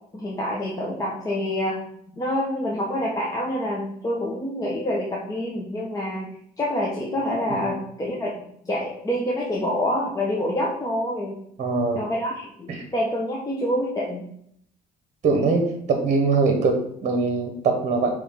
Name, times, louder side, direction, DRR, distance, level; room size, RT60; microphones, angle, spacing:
voice 1, 0.1-1.8 2.1-11.4 11.9-14.2, left 1 dB, 20° left, -4 dB, 1.1 m, -27 dB
voice 2, 11.6-12.0 12.7-12.8 15.2-18.1, right 4 dB, 45° right, 4 dB, 1.1 m, -22 dB
7.6 x 3.3 x 3.8 m, 0.70 s
cardioid pair, 110°, 17 cm